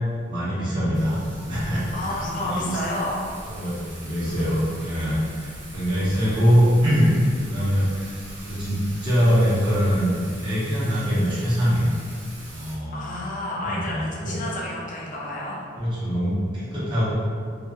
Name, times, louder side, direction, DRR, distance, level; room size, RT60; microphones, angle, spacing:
voice 1, 0.3-2.8 3.4-7.1 7.4-8.1 8.4-11.9 12.5-13.2 13.6-14.4 15.8-17.1, equal, 25° right, -11 dB, 0.7 m, -23 dB
Thunder / Rain, 0.9-12.8, right 1 dB, 65° right, 0.7 m, -41 dB
voice 2, 1.9-3.2 4.3-4.8 6.0-6.3 12.9-15.6, left 1 dB, 45° left, -5 dB, 0.5 m, -31 dB
2.7 x 2.4 x 2.3 m, 2.2 s
head